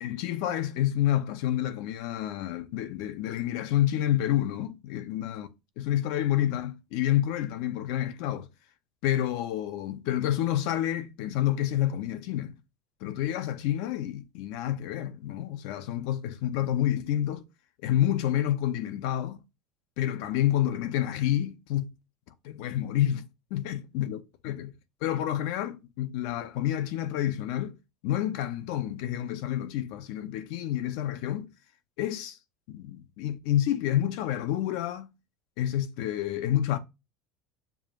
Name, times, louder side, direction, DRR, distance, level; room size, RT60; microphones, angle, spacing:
voice 1, 0.0-5.5 5.8-8.5 9.0-12.6 13.0-17.4 17.8-19.4 20.0-21.9 22.4-23.3 23.5-24.2 24.4-24.7 25.0-27.8 28.0-31.5 32.0-32.4 32.7-35.1 35.6-36.8, left 12 dB, 70° left, 0.6 m, -29 dB
7.0 x 2.5 x 2.9 m
cardioid pair, 150°, 0 cm